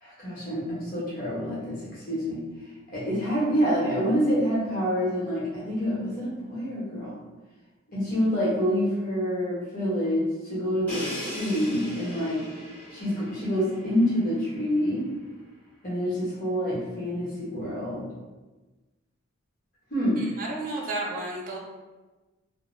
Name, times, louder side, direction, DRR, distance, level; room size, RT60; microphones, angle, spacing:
voice 1, 0.0-2.4 2.9-7.1 7.9-12.4 12.9-15.0 15.8-18.0 19.9-20.2, equal, 45° left, -7 dB, 0.9 m, -27 dB
Crash cymbal, 10.9-14.7, left 1 dB, 5° left, 0.7 m, -38 dB
voice 2, 20.2-21.6, right 2 dB, 40° right, -2 dB, 0.4 m, -32 dB
2.3 x 2.1 x 3.0 m, 1.2 s
head